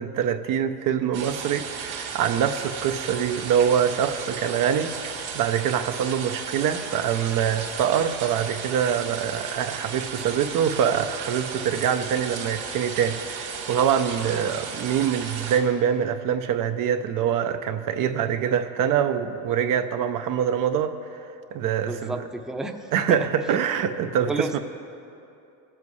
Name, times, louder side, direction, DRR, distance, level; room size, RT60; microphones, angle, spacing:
voice 1, 0.0-5.0 5.3-21.2 21.5-22.2 22.9-24.6, right 8 dB, 50° right, 7 dB, 0.7 m, -24 dB
sound 1, 1.1-15.6, right 6 dB, 90° right, 2.0 m, -35 dB
voice 2, 21.9-22.8 23.1-23.2 24.3-24.6, right 2 dB, ahead, 4 dB, 0.7 m, -30 dB
19.5 x 7.6 x 3.2 m, 2.7 s
supercardioid pair, 90°, 41 cm